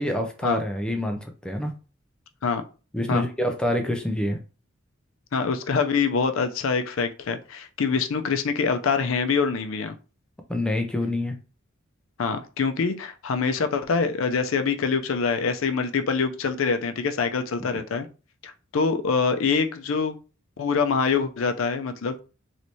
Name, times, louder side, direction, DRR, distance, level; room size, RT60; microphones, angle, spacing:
voice 1, 0.0-1.7 2.9-4.4 10.5-11.4, left 1 dB, 5° left, 4 dB, 0.4 m, -26 dB
voice 2, 5.3-9.9 12.2-18.1 18.4-20.2 20.6-22.2, left 5 dB, 75° left, 8 dB, 0.5 m, -25 dB
3.2 x 3.0 x 2.7 m, 0.34 s
head